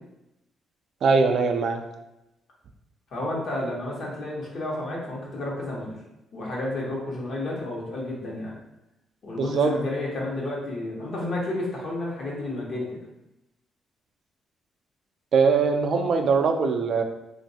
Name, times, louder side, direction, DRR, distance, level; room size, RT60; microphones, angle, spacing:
voice 1, 1.0-1.8 9.4-9.7 15.3-17.0, right 5 dB, 60° right, 5 dB, 0.3 m, -21 dB
voice 2, 3.1-6.0 6.3-8.6 9.2-13.0, left 2 dB, 60° left, -4 dB, 1.0 m, -31 dB
3.1 x 2.4 x 2.7 m, 0.91 s
cardioid pair, 90°, 0 cm